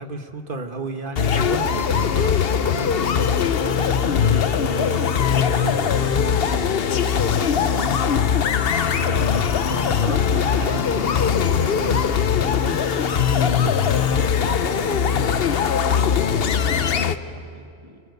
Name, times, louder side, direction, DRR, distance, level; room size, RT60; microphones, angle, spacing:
voice 1, 0.0-7.9 8.9-12.1 12.3-12.8, right 3 dB, 50° right, 7 dB, 1.8 m, -34 dB
sound 1, 1.2-17.2, left 7 dB, 65° left, 1.0 m, -20 dB
voice 2, 13.9-18.0, right 2 dB, 25° right, 5 dB, 1.6 m, -39 dB
28.0 x 25.0 x 8.2 m, 2.4 s
omnidirectional pair, 1.1 m